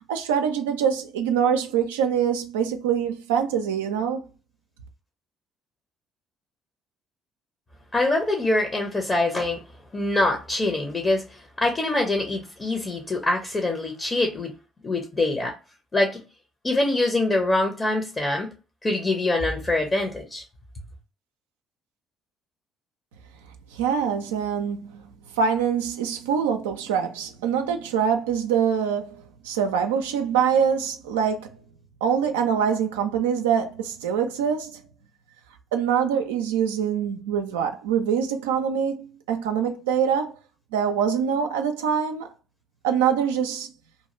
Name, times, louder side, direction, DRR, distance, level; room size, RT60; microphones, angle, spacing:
voice 1, 0.1-4.2 23.7-25.0 25.4-31.5 32.0-34.8 35.7-40.3 40.7-42.3 42.8-43.7, right 7 dB, 80° right, 0.3 m, -24 dB
voice 2, 7.9-9.6 9.9-14.5 14.8-15.5 15.9-16.2 16.6-18.5 18.8-20.4, left 2 dB, 30° left, 0.7 m, -24 dB
2.6 x 2.3 x 2.9 m
hypercardioid pair, 50°, 0 cm